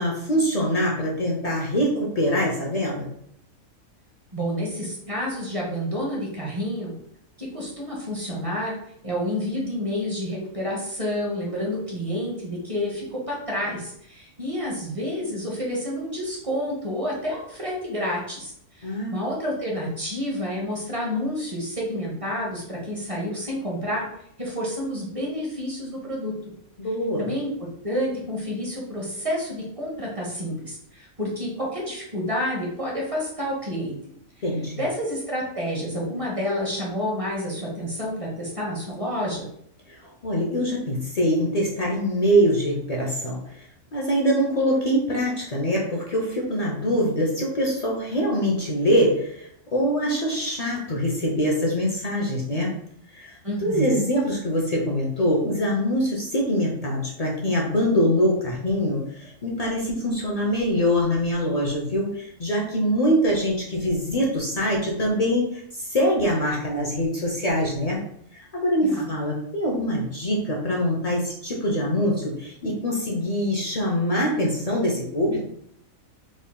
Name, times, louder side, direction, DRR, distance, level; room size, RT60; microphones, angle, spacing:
voice 1, 0.0-3.1 18.8-19.1 26.8-27.3 34.4-34.8 39.9-40.0 40.2-43.7 43.9-52.7 53.1-68.0 68.3-75.4, equal, 65° left, -3 dB, 0.4 m, -24 dB
voice 2, 4.3-6.9 7.4-8.7 9.0-24.1 24.4-26.5 27.2-34.0 34.8-39.5 53.4-54.0 68.8-69.1, equal, 30° right, -3 dB, 0.7 m, -29 dB
3.7 x 3.6 x 2.2 m, 0.71 s
omnidirectional pair, 1.5 m